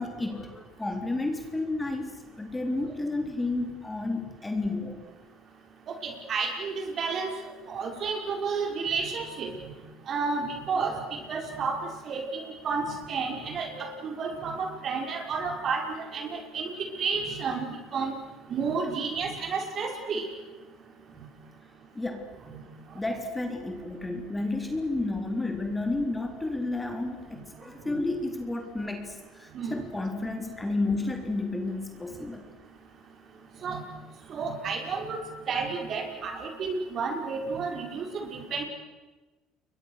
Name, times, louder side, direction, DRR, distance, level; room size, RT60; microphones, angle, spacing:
voice 1, 0.0-5.0 22.0-22.3 22.9-32.4, left 2 dB, 10° left, 4 dB, 3.6 m, -31 dB
voice 2, 5.9-7.3 7.7-9.7 10.1-16.7 17.0-18.1 18.5-20.2 22.5-22.6 27.9-28.0 29.5-29.8 33.6-33.8 34.3-38.6, right 4 dB, 45° right, 3 dB, 5.5 m, -31 dB
29.5 x 23.0 x 6.6 m, 1.2 s
supercardioid pair, 100°, 0 cm